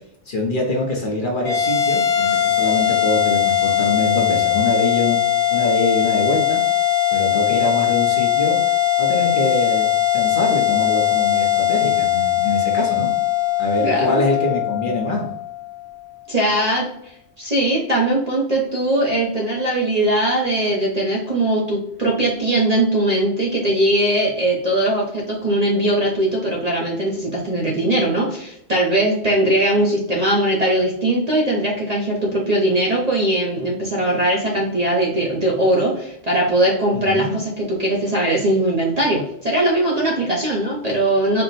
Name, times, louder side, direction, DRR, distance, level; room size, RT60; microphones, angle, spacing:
voice 1, 0.3-5.2 5.5-6.6 7.1-8.6 9.0-13.1 13.6-15.3 36.9-37.3, left 2 dB, 50° left, -1 dB, 0.8 m, -24 dB
sound 1, 1.4-16.0, left 11 dB, 70° left, 1.0 m, -20 dB
voice 2, 13.8-14.2 16.3-41.4, right 1 dB, 40° right, -3 dB, 0.6 m, -20 dB
4.4 x 2.1 x 4.0 m, 0.74 s
omnidirectional pair, 1.3 m